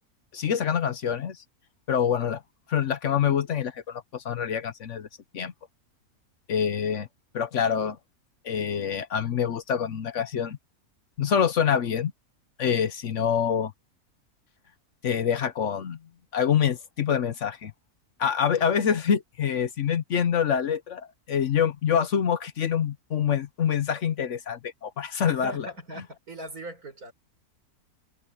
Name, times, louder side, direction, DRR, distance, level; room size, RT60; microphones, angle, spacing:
voice 1, 0.3-1.4 1.9-2.4 2.7-5.1 5.3-5.5 6.5-7.1 7.3-8.0 8.4-10.6 11.2-12.1 12.6-13.7 15.0-16.0 16.3-17.7 18.2-25.6, left 8 dB, 60° left, 1.1 m, -26 dB
voice 2, 25.3-27.1, equal, 75° right, 5.9 m, -39 dB
omnidirectional pair, 1.6 m